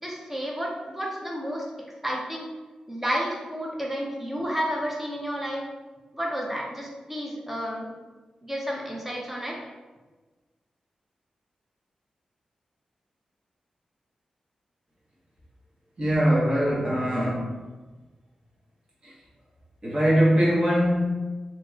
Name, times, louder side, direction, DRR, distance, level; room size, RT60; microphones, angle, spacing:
voice 1, 0.0-1.7 2.0-2.5 2.9-5.6 6.1-7.9 8.4-9.6, equal, 10° right, -2 dB, 0.6 m, -31 dB
voice 2, 16.0-17.6 19.0-19.2 19.8-21.1, equal, 40° right, -7 dB, 1.1 m, -22 dB
2.8 x 2.8 x 2.4 m, 1.3 s
wide cardioid pair, 85°, 2 cm